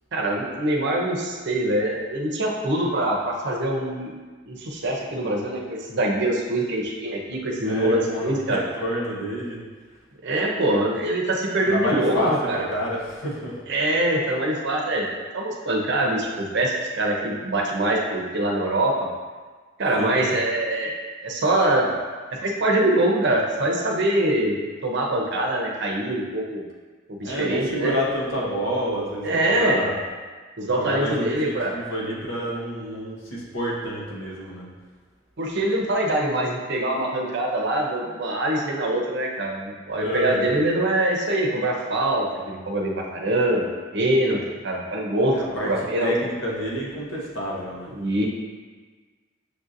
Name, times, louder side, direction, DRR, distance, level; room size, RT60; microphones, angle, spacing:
voice 1, 0.1-4.1 4.5-8.6 10.2-12.7 13.7-15.1 15.3-18.9 19.8-20.9 21.2-22.0 22.4-26.6 27.1-28.0 29.2-29.8 30.6-31.7 35.4-43.6 43.9-45.4 45.6-46.1 47.9-48.3, right 1 dB, 60° right, 0 dB, 0.7 m, -24 dB
voice 2, 7.6-9.6 11.7-13.6 20.0-20.3 27.2-30.0 30.7-34.7 40.0-40.5 45.3-47.9, equal, 80° left, -4 dB, 1.1 m, -29 dB
6.4 x 2.7 x 2.5 m, 1.4 s
head